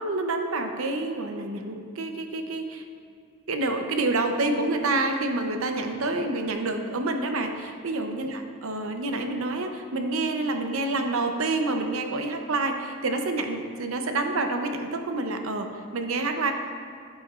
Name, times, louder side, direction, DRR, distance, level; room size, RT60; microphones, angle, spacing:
voice 1, 0.0-2.8 3.5-16.5, right 2 dB, 70° right, 5 dB, 0.7 m, -28 dB
11.0 x 8.3 x 2.4 m, 2.3 s
head